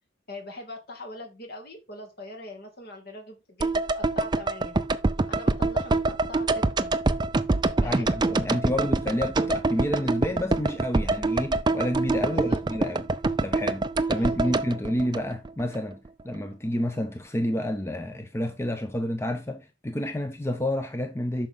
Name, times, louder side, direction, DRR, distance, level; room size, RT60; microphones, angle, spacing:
voice 1, 0.3-4.7 5.3-6.9 7.8-8.1 12.3-12.6 14.1-14.6, left 2 dB, 55° left, 2.4 m, -42 dB
sound 1, 3.6-16.1, right 2 dB, 25° right, 0.5 m, -25 dB
voice 2, 7.8-13.1 13.4-16.0 16.2-21.5, left 1 dB, 15° left, 0.7 m, -29 dB
8.9 x 6.0 x 3.8 m
head